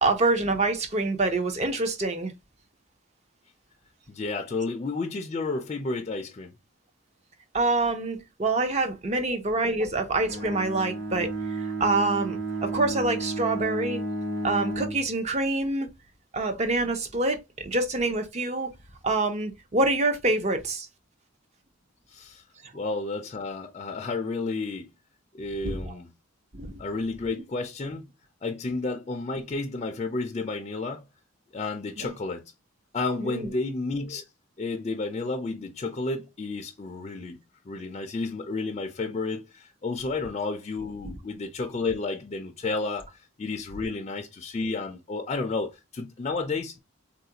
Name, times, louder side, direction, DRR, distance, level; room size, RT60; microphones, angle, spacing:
voice 1, 0.0-2.3 7.5-14.0 14.4-15.9 16.3-18.7 19.0-20.9 25.6-25.9 26.5-26.7 32.0-32.1 33.2-33.5 41.0-41.1, right 2 dB, 35° right, 0.5 m, -26 dB
voice 2, 4.1-6.5 9.1-9.2 9.8-9.9 22.1-22.4 22.7-24.9 25.3-26.1 26.8-28.1 28.4-31.1 31.5-32.5 32.9-34.3 34.6-37.4 37.7-46.8, left 3 dB, 30° left, 0.3 m, -31 dB
Bowed string instrument, 10.2-15.1, right 2 dB, 65° right, 1.0 m, -32 dB
3.6 x 2.4 x 2.7 m
head